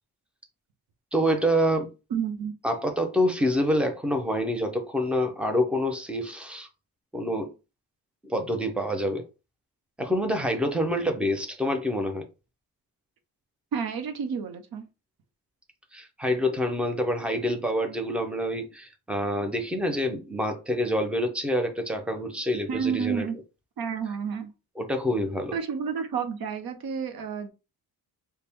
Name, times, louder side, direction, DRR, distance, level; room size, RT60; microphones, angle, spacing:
voice 1, 1.1-1.9 2.6-6.7 7.1-7.5 8.2-9.3 10.0-12.3 15.9-23.3 24.8-25.5, equal, 5° right, 0.5 m, -27 dB
voice 2, 2.1-2.5 13.7-14.8 22.7-23.3 23.8-24.5 25.5-27.5, right 6 dB, 75° right, 0.8 m, -30 dB
4.1 x 2.2 x 3.4 m
wide cardioid pair, 165°, 37 cm